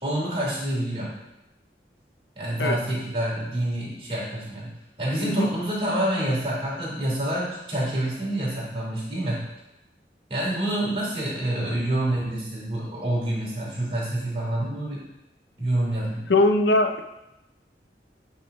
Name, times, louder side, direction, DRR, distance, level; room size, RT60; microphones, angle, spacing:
voice 1, 0.0-1.1 2.3-4.7 5.0-9.4 10.3-15.0 15.6-16.2, right 1 dB, 30° right, -6 dB, 3.3 m, -27 dB
voice 2, 16.3-17.0, left 2 dB, 85° left, 6 dB, 0.7 m, -20 dB
10.5 x 4.1 x 5.1 m, 0.90 s
head